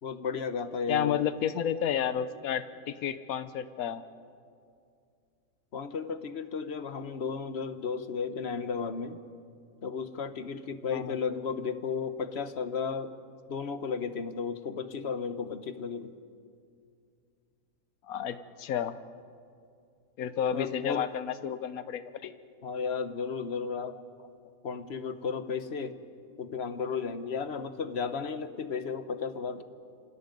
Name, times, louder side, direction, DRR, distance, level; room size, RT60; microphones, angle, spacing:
voice 1, 0.0-1.2 5.7-9.2 9.8-13.2 13.5-16.2 20.5-21.1 22.6-24.0 24.6-26.0 26.4-29.6, left 5 dB, 50° left, 11 dB, 1.2 m, -34 dB
voice 2, 0.9-4.0 10.9-11.1 18.1-18.9 20.2-22.3, left 9 dB, 85° left, 13 dB, 1.3 m, -31 dB
28.0 x 25.0 x 5.3 m, 2.4 s
omnidirectional pair, 1.5 m